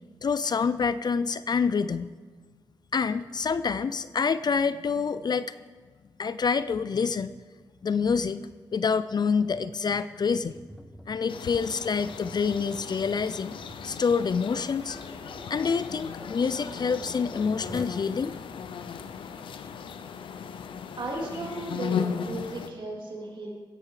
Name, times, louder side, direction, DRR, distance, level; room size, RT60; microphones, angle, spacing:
voice 1, 0.2-2.1 2.9-5.5 6.2-7.3 7.8-10.5 11.1-13.5 13.8-15.0 15.5-18.4, left 5 dB, 55° left, 14 dB, 0.4 m, -27 dB
Tap, 10.5-18.0, right 1 dB, 5° right, 1.2 m, -47 dB
sound 1, 11.3-22.7, left 7 dB, 90° left, 0.7 m, -37 dB
voice 2, 21.0-23.5, right 2 dB, 75° right, -1 dB, 3.4 m, -35 dB
16.0 x 10.5 x 4.9 m, 1.5 s
cardioid pair, 50°, 8 cm